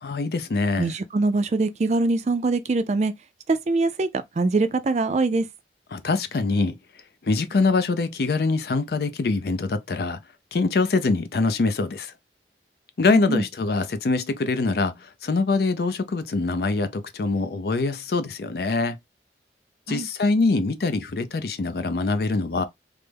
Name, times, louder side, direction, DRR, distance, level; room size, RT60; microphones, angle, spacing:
voice 1, 0.0-0.9 5.9-6.8 7.2-10.2 10.5-12.1 13.0-19.0 19.9-22.6, left 3 dB, 60° left, 0.4 m, -24 dB
voice 2, 0.8-3.1 3.5-4.1 4.4-5.5 13.1-13.4 19.9-20.1, right 3 dB, 40° right, 0.3 m, -23 dB
3.3 x 2.0 x 3.3 m
head